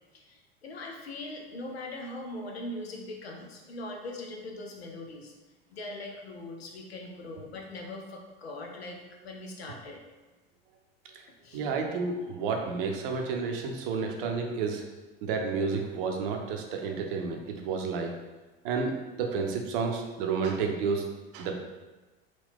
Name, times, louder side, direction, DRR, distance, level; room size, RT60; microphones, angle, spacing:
voice 1, 0.1-5.3 5.7-10.0 11.4-11.7, left 2 dB, 80° left, 1 dB, 0.7 m, -41 dB
voice 2, 11.5-14.8 15.2-18.1 18.6-21.0 21.3-21.6, right 5 dB, 60° right, 3 dB, 0.7 m, -30 dB
3.7 x 2.4 x 3.5 m, 1.2 s
figure-of-eight pair, 75°, 30 cm